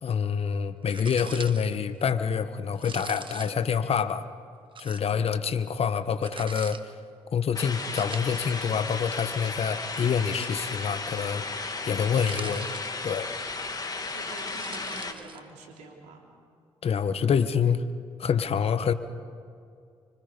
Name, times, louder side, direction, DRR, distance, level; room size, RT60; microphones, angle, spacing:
voice 1, 0.0-4.3 4.8-6.9 7.3-11.4 11.9-12.7 13.0-13.3 16.8-17.8 18.2-18.9, left 7 dB, 60° left, 11 dB, 1.2 m, -26 dB
sound 1, 0.9-1.8 2.7-3.7 4.7-5.1 6.2-6.8 7.8-8.7 10.1-10.9 12.0-13.2 14.2-15.4, right 5 dB, 45° right, 1.4 m, -43 dB
voice 2, 5.1-5.5 14.1-16.2, right 3 dB, 85° right, 1 dB, 3.4 m, -47 dB
sound 2, 7.5-15.1, left 3 dB, 35° left, 2.4 m, -34 dB
26.0 x 25.5 x 5.3 m, 2.3 s
supercardioid pair, 50°, 12 cm